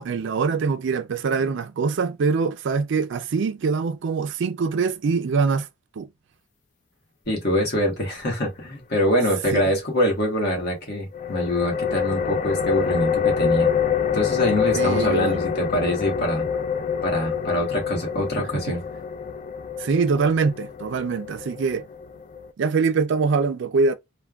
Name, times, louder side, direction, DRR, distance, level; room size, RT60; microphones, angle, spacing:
voice 1, 0.0-5.7 6.0-6.1 9.5-9.6 14.7-15.4 19.8-21.9 22.6-23.9, right 5 dB, 60° right, 0.4 m, -23 dB
voice 2, 7.3-13.7 14.1-16.5 17.0-18.8, equal, 55° left, 1.3 m, -24 dB
sound 1, 11.1-22.5, left 7 dB, 40° left, 0.3 m, -26 dB
3.3 x 2.2 x 2.3 m
head